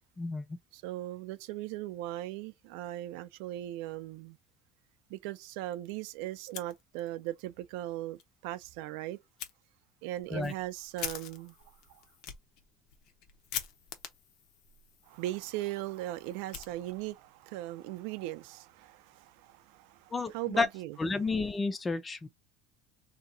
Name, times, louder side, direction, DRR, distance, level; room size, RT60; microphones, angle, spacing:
voice 1, 0.7-4.4 5.1-9.2 10.0-11.6 11.9-12.0 15.1-21.0, right 15 dB, 85° right, 0.4 m, -39 dB
Fire, 6.4-7.3 7.6-7.7 8.2-8.3 9.4-9.5 10.1-17.2, left 9 dB, 60° left, 0.8 m, -45 dB
voice 2, 20.1-20.7 21.0-22.3, left 3 dB, 15° left, 0.4 m, -31 dB
2.8 x 2.3 x 3.7 m
cardioid pair, 160°, 0 cm